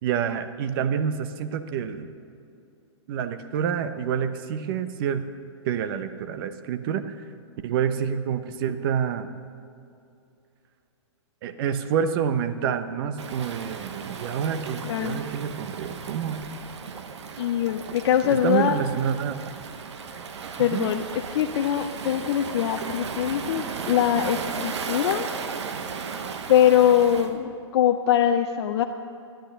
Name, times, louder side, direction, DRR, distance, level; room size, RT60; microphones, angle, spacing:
voice 1, 0.0-2.1 3.1-5.2 5.6-7.1 7.6-9.3 11.4-16.5 18.2-19.4 20.6-20.9, right 8 dB, 50° right, 10 dB, 0.9 m, -27 dB
Waves surf, 13.2-27.3, right 5 dB, 70° right, 1.2 m, -35 dB
voice 2, 14.9-15.2 17.4-18.7 20.6-21.0 21.3-25.3 26.5-28.8, left 10 dB, 60° left, 6 dB, 0.6 m, -22 dB
13.0 x 10.5 x 6.8 m, 2.5 s
hypercardioid pair, 120°, 15 cm